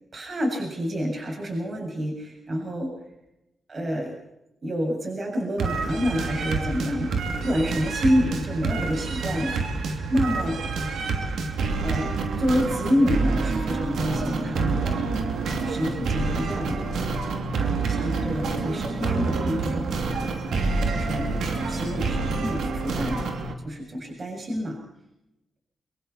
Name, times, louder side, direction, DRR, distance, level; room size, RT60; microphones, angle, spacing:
voice 1, 0.1-2.9 3.7-4.1 4.6-7.1 7.4-10.8 11.8-15.2 15.5-17.0 17.6-19.9 20.2-20.4 20.9-21.3 21.7-23.2 23.6-24.8, equal, 50° right, 1 dB, 7.2 m, -28 dB
sound 1, 5.6-23.5, right 4 dB, 85° right, 3.0 m, -27 dB
25.5 x 23.0 x 4.4 m, 0.88 s
cardioid pair, 65°, 0 cm